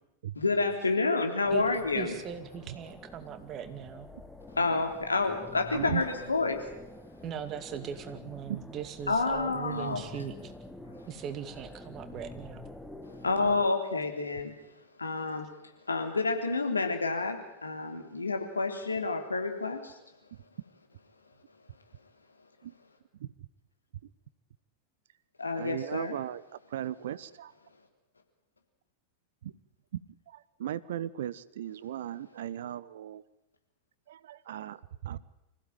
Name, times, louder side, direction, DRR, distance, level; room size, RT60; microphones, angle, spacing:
voice 1, 0.3-2.2 4.5-6.6 9.1-10.2 13.2-14.5 15.0-15.5 15.9-20.0 25.4-26.2, left 3 dB, 80° left, 4 dB, 3.4 m, -29 dB
sound 1, 1.4-13.7, left 2 dB, 5° left, 1.9 m, -48 dB
voice 2, 1.9-4.1 7.2-10.5 11.0-12.7, right 9 dB, 30° right, 9 dB, 2.4 m, -39 dB
voice 3, 5.7-6.0 8.5-8.6 22.6-22.7 23.2-23.3 25.5-26.4 26.7-27.5 29.4-29.5 30.3-33.2 34.1-35.2, right 11 dB, 60° right, 19 dB, 0.8 m, -37 dB
25.5 x 16.0 x 9.1 m, 0.93 s
figure-of-eight pair, 90°, 0 cm